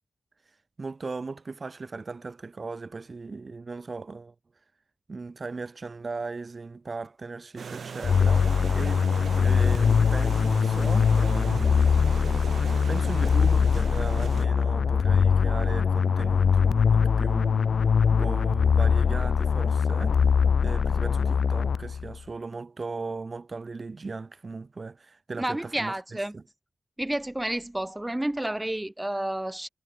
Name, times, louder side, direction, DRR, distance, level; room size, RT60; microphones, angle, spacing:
voice 1, 0.8-4.3 5.1-9.0 9.3-12.0 12.9-17.7 18.1-20.3 20.6-26.0 26.3-26.4, right 4 dB, 40° right, 5.9 m, -37 dB
sound 1, 7.6-14.5, right 6 dB, 75° right, 0.8 m, -38 dB
sound 2, 8.0-22.2, left 6 dB, 75° left, 0.6 m, -22 dB
voice 2, 25.4-26.3 27.0-29.7, right 1 dB, 10° right, 1.5 m, -30 dB
wide cardioid pair, 120°, 0 cm